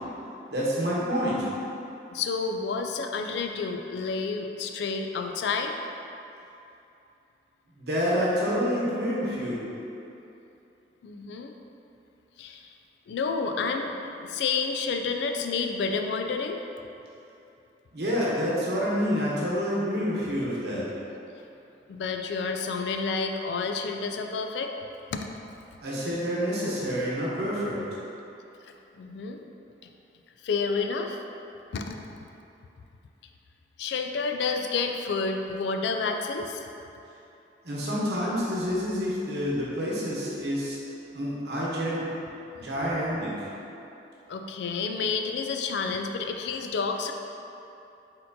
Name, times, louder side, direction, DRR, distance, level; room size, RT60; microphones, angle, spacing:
voice 1, 0.5-1.5 7.8-9.6 17.9-20.8 25.8-27.8 37.6-40.8 41.1-42.1 42.6-43.3, equal, 65° right, -6 dB, 0.9 m, -28 dB
voice 2, 2.1-5.8 11.0-11.5 12.4-12.7 13.1-16.6 21.9-24.7 25.1-25.3 29.0-29.5 29.8-29.9 30.4-31.2 31.7-32.0 33.8-36.6 44.3-47.1, left 4 dB, 75° left, 5 dB, 0.3 m, -30 dB
4.4 x 3.8 x 2.7 m, 2.8 s
head